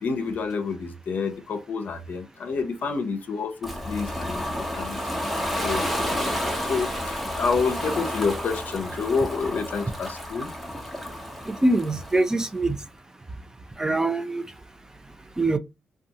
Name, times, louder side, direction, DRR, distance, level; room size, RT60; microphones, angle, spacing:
voice 1, 0.0-4.4 4.8-5.0 5.6-10.5, left 5 dB, 60° left, 0.6 m, -28 dB
Ocean, 3.6-12.5, equal, ahead, 1.0 m, -31 dB
voice 2, 11.5-12.8 13.8-14.4 15.4-15.6, right 2 dB, 20° right, 0.5 m, -23 dB
2.6 x 2.3 x 2.8 m
cardioid pair, 65°, 3 cm